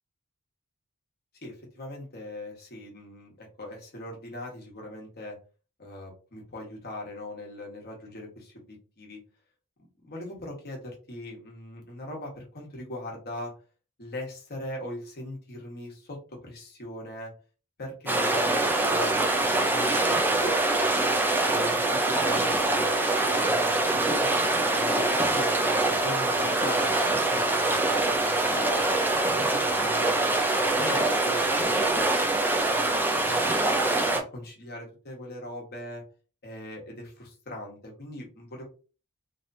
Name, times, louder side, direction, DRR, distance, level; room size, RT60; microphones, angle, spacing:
voice 1, 1.4-5.4 5.8-9.2 10.0-13.5 14.0-17.3 17.8-21.1 21.5-22.9 23.3-28.8 29.1-32.2 32.7-36.0 36.4-38.6, left 1 dB, 45° left, -1 dB, 1.3 m, -40 dB
sound 1, 18.1-34.2, right 2 dB, 10° right, 0.5 m, -24 dB
3.2 x 2.9 x 2.6 m, 0.36 s
head